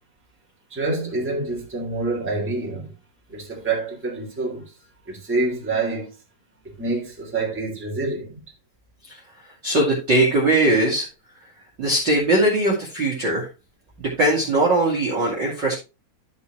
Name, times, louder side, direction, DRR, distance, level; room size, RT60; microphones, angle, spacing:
voice 1, 0.7-2.9 3.3-4.8 5.0-6.2 6.6-8.4, right 3 dB, 5° right, 2.5 m, -27 dB
voice 2, 9.6-11.1 11.8-13.5 14.0-15.7, right 1 dB, 35° right, 2.1 m, -20 dB
13.0 x 5.4 x 3.1 m
omnidirectional pair, 4.4 m